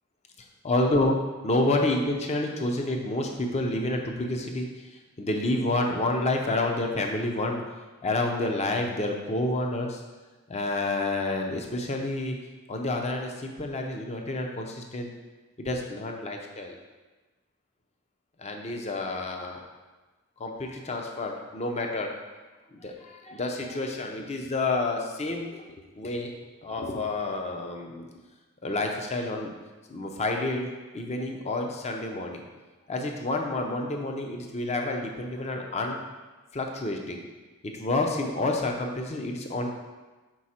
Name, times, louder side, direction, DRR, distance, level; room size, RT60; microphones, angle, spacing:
voice 1, 0.4-1.2 1.4-4.9 5.2-7.6 8.0-10.0 10.5-12.4 12.7-15.1 15.6-16.8 18.4-19.7 20.4-22.1 22.7-25.7 25.9-26.3 26.6-28.1 28.6-29.5 29.9-32.5 32.9-36.0 36.5-37.2 37.6-39.7, left 2 dB, 30° left, 2 dB, 0.6 m, -29 dB
6.2 x 4.3 x 4.2 m, 1.2 s
head